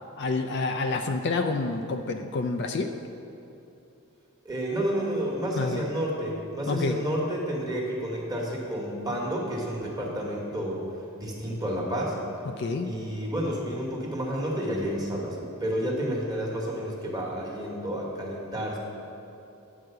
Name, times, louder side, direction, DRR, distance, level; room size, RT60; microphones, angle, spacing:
voice 1, 0.2-2.9 5.6-5.8 6.7-7.0 12.6-12.9, left 3 dB, 50° left, 6 dB, 0.4 m, -28 dB
voice 2, 4.4-10.8 11.2-12.2 12.8-18.8, equal, 15° right, -3 dB, 1.3 m, -30 dB
9.3 x 4.7 x 6.7 m, 2.9 s
head